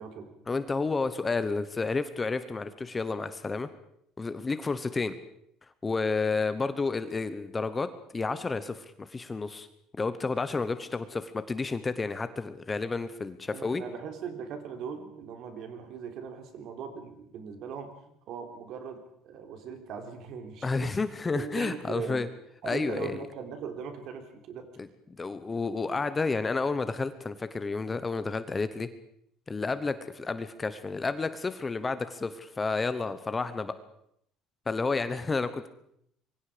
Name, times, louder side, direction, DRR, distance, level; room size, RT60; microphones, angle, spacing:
voice 1, 0.5-3.7 4.2-5.1 5.8-9.7 10.0-13.8 20.6-22.3 22.6-23.2 24.8-24.9 25.2-28.9 29.5-33.7 34.7-35.7, left 4 dB, 15° left, 12 dB, 0.9 m, -31 dB
voice 2, 13.5-17.9 18.3-21.0 21.3-22.3 22.6-24.7, right 6 dB, 50° right, 6 dB, 3.5 m, -39 dB
26.0 x 23.0 x 5.1 m, 0.71 s
cardioid pair, 170°, 0 cm